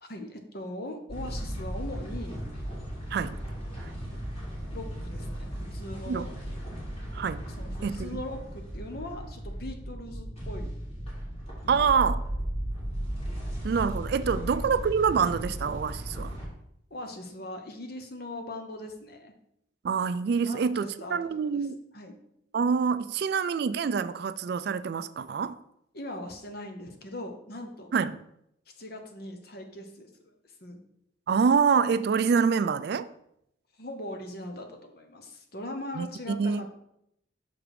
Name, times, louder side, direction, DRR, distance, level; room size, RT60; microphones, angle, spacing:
voice 1, 0.0-2.4 4.7-6.6 7.6-10.7 11.6-11.9 14.3-14.8 16.9-19.3 20.4-21.2 21.5-21.7 21.9-22.1 25.9-27.9 28.8-30.3 30.6-30.8 33.8-36.7, left 1 dB, 50° left, 1.0 m, -40 dB
sound 1, 1.1-16.5, equal, 30° left, 2.8 m, -36 dB
voice 2, 7.1-7.4 7.8-8.1 11.7-12.2 13.6-16.4 19.8-21.8 22.5-25.6 27.9-28.2 31.3-33.1 36.0-36.7, right 6 dB, 55° right, 0.3 m, -26 dB
6.2 x 4.7 x 4.9 m
head